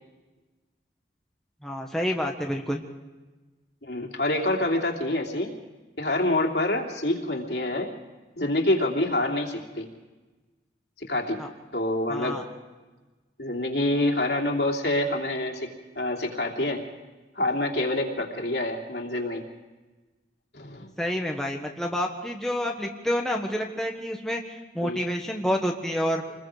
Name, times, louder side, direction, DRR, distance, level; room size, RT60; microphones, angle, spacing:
voice 1, 1.6-2.8 11.4-11.5 12.1-12.4 21.0-26.2, equal, 5° left, 0 dB, 1.4 m, -28 dB
voice 2, 3.8-5.5 6.0-7.9 8.4-9.9 11.1-11.4 11.7-12.4 13.4-15.7 15.9-16.8 17.3-19.4 20.5-20.9 24.8-25.0, left 1 dB, 70° left, 1 dB, 3.0 m, -26 dB
27.5 x 21.0 x 5.0 m, 1.2 s
head